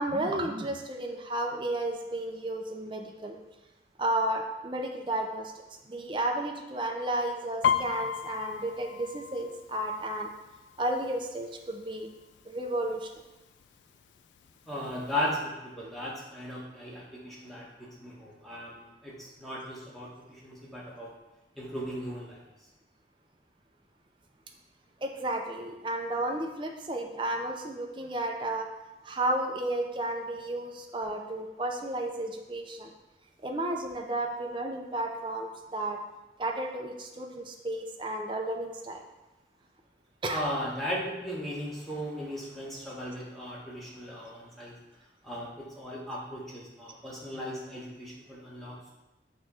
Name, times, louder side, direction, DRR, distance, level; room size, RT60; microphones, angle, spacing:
voice 1, 0.0-3.4 4.0-5.5 5.9-10.3 10.8-12.1 12.5-13.1 25.0-28.7 29.0-32.9 33.4-36.0 36.4-39.0 40.2-40.4, right 1 dB, 25° right, 2 dB, 0.5 m, -32 dB
Piano, 7.6-11.3 11.6-12.0 12.4-13.0 13.6-13.7 13.9-15.0 15.3-15.4, left 7 dB, 80° left, 0.3 m, -33 dB
voice 2, 14.7-21.1 21.5-22.4 40.3-44.8 45.2-48.9, equal, ahead, -6 dB, 1.3 m, -37 dB
6.4 x 3.0 x 4.8 m, 1.0 s
head